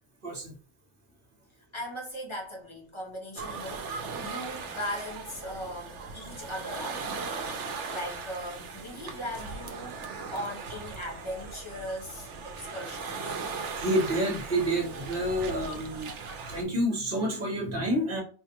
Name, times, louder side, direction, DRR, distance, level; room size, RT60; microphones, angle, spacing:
voice 1, 0.2-0.5 13.5-16.1 16.5-18.2, right 1 dB, 50° right, 1.3 m, -29 dB
voice 2, 1.7-10.0 10.3-13.4, equal, 25° left, 0.9 m, -39 dB
sound 1, 3.4-16.6, right 4 dB, 75° right, 1.0 m, -38 dB
4.5 x 2.4 x 2.9 m
omnidirectional pair, 1.3 m